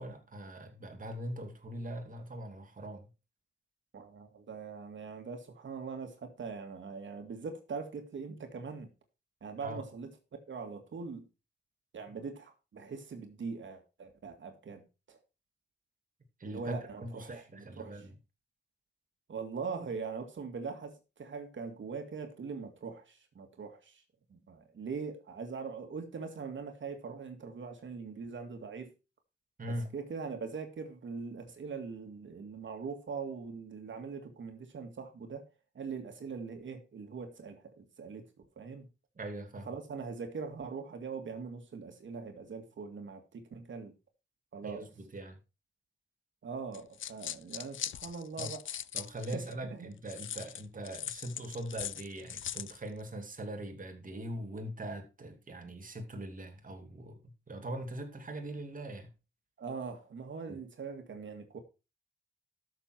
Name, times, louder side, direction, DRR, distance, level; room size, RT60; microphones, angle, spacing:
voice 1, 0.0-3.1 9.6-9.8 16.4-18.1 29.6-29.9 39.2-39.7 44.6-45.4 48.4-48.5 48.9-59.1 60.5-60.6, right 1 dB, 45° right, 2.6 m, -41 dB
voice 2, 3.9-8.9 9.4-10.1 10.5-11.3 11.9-15.2 16.4-18.1 19.3-24.0 24.3-28.9 29.7-35.5 35.7-38.3 38.6-38.9 39.7-43.9 44.5-44.8 46.4-48.8 49.3-49.9 59.6-61.6, right 5 dB, 75° right, 2.2 m, -42 dB
sound 1, 46.7-49.5 50.1-52.8, left 10 dB, 85° left, 0.5 m, -40 dB
12.5 x 6.8 x 4.5 m
wide cardioid pair, 100°, 20 cm